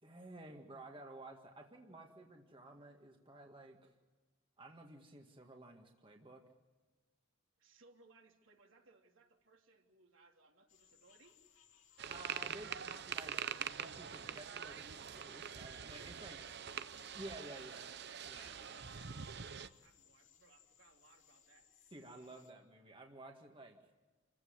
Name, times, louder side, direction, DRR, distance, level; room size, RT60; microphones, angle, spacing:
voice 1, 0.0-3.9 4.6-6.4 12.1-16.4 17.2-17.9 18.3-19.0 21.9-23.8, right 1 dB, 25° right, 2 dB, 1.9 m, -53 dB
voice 2, 7.6-11.3 14.3-14.8 15.9-17.1 17.5-22.3, right 3 dB, 70° right, 1 dB, 3.4 m, -67 dB
sound 1, 10.7-22.5, left 8 dB, 65° left, 3.0 m, -67 dB
sound 2, 12.0-19.7, right 8 dB, 55° right, 0.7 m, -44 dB
28.5 x 15.5 x 9.6 m, 1.3 s
head